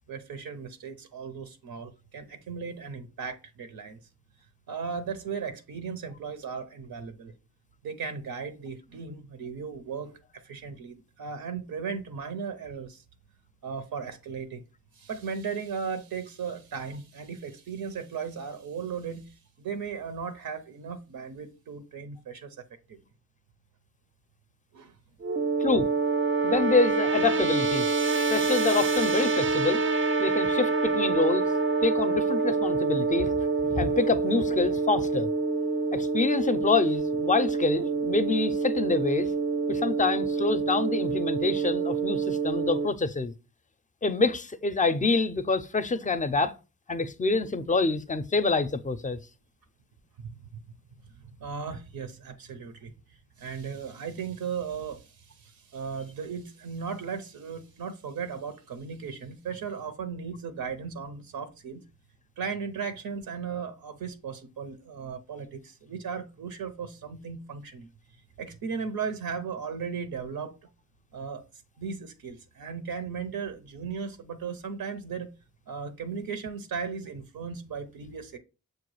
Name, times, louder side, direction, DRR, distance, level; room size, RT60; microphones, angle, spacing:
voice 1, 0.1-4.0 4.7-7.3 7.8-13.0 13.6-14.6 15.0-22.6 22.9-23.0 24.7-24.9 50.2-50.6 51.4-52.9 53.4-61.8 62.4-67.9 68.4-70.6 71.1-71.4 71.8-75.3 75.7-78.4, right 6 dB, 85° right, 0.6 m, -36 dB
sound 1, 25.2-42.9, right 4 dB, 35° right, 0.4 m, -26 dB
voice 2, 26.4-27.9 28.3-29.8 30.2-31.5 31.8-35.3 35.9-39.3 39.7-43.3 44.0-46.5 46.9-49.2, left 3 dB, 25° left, 0.4 m, -26 dB
6.3 x 2.3 x 3.1 m
cardioid pair, 55°, 35 cm